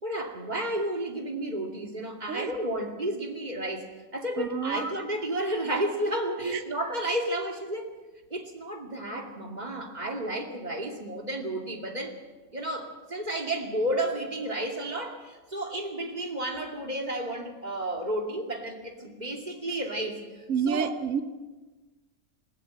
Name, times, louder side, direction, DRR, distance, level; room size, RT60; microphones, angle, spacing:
voice 1, 0.0-7.9 8.3-12.1 12.5-21.0, right 1 dB, 30° right, 2 dB, 2.6 m, -32 dB
voice 2, 4.4-4.9 6.4-6.6 20.5-21.2, right 6 dB, 70° right, 8 dB, 1.4 m, -29 dB
20.0 x 17.0 x 7.7 m, 1.2 s
omnidirectional pair, 1.5 m